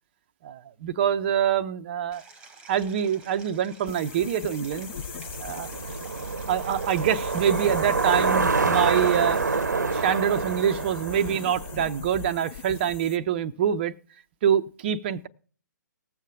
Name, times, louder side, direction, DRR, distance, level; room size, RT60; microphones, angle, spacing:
voice 1, 0.4-2.2 2.7-4.9 5.4-5.7 6.2-9.4 9.7-13.9 14.4-15.3, right 9 dB, 30° right, 0.6 m, -25 dB
Stream, 2.1-9.7, right 4 dB, 10° right, 1.3 m, -50 dB
sound 1, 3.9-13.2, left 9 dB, 35° left, 0.7 m, -41 dB
Bicycle, 4.3-12.6, right 4 dB, 65° right, 0.7 m, -27 dB
19.0 x 7.4 x 3.5 m
figure-of-eight pair, 130°, 10 cm